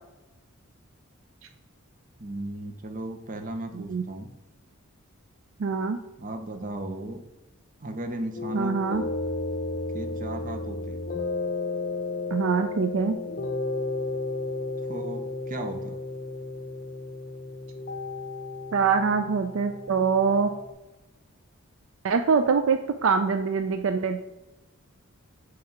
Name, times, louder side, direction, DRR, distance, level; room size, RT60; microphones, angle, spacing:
voice 1, 2.2-4.3 6.2-7.2 7.8-8.8 9.9-11.0 14.9-16.0, right 1 dB, 40° right, 6 dB, 0.7 m, -35 dB
voice 2, 5.6-6.0 8.5-9.0 12.3-13.2 18.7-20.5 22.0-24.2, right 5 dB, 65° right, 7 dB, 0.4 m, -24 dB
sound 1, 8.4-20.7, left 3 dB, 40° left, 0.7 m, -33 dB
7.3 x 3.3 x 5.8 m, 1.0 s
head